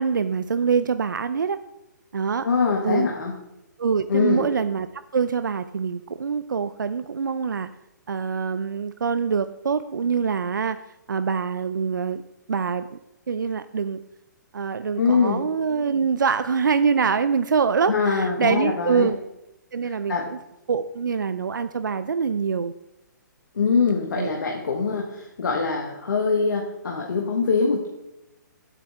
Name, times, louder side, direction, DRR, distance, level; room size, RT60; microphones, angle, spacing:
voice 1, 0.0-1.6 2.1-2.5 2.8-3.1 3.8-7.7 8.1-10.8 11.1-12.2 12.5-13.0 13.3-14.0 14.5-19.2 19.7-20.4 20.7-22.7 24.2-24.3, right 6 dB, 90° right, 12 dB, 0.4 m, -24 dB
voice 2, 2.4-3.3 4.1-4.4 15.0-15.4 17.9-19.1 19.8-20.3 23.5-27.9, left 5 dB, 75° left, -1 dB, 1.5 m, -23 dB
9.6 x 8.1 x 3.6 m, 0.89 s
hypercardioid pair, 145°, 10 cm